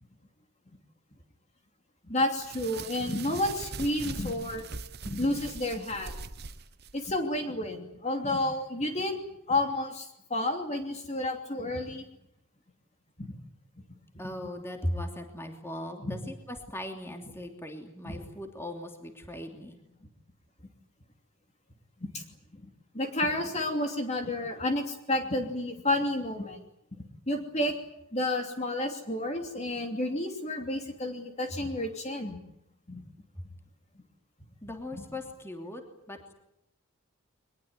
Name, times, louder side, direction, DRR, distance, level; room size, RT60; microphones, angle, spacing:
voice 1, 2.0-4.6 5.0-6.1 6.9-9.2 9.5-12.0 13.2-13.3 16.0-16.2 18.0-18.2 22.0-22.2 22.9-26.6 27.3-27.7 28.1-32.4 32.9-33.0, left 1 dB, 30° left, 4 dB, 2.9 m, -30 dB
sound 1, 2.4-7.2, right 4 dB, 50° right, 1.1 m, -42 dB
voice 2, 14.2-19.8 34.6-36.3, left 1 dB, 10° left, 4 dB, 3.0 m, -38 dB
23.0 x 21.0 x 9.6 m, 0.80 s
head